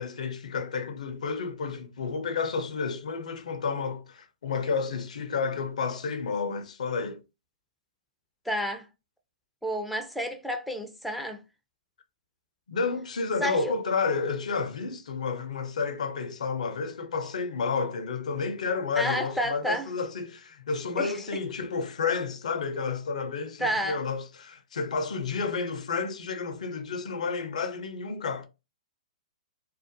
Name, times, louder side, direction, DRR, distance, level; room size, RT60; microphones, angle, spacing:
voice 1, 0.0-7.2 12.7-28.5, left 5 dB, 70° left, 0.4 m, -31 dB
voice 2, 8.5-8.9 9.6-11.4 13.4-13.7 19.0-19.9 21.0-21.4 23.6-24.0, equal, ahead, 0.3 m, -30 dB
2.3 x 2.1 x 2.6 m
figure-of-eight pair, 115°, 4 cm